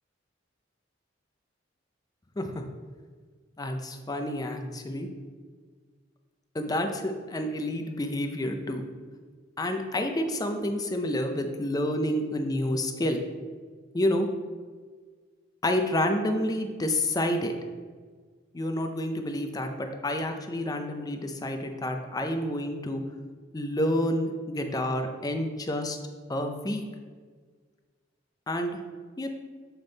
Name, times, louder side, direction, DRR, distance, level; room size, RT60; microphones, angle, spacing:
voice 1, 3.6-5.1 6.5-8.9 9.6-13.2 13.9-14.3 15.6-17.5 18.5-23.0 23.5-26.0 26.3-26.8 28.5-28.8 29.2-29.3, left 1 dB, 20° left, 5 dB, 0.5 m, -29 dB
7.3 x 3.5 x 3.9 m, 1.5 s
head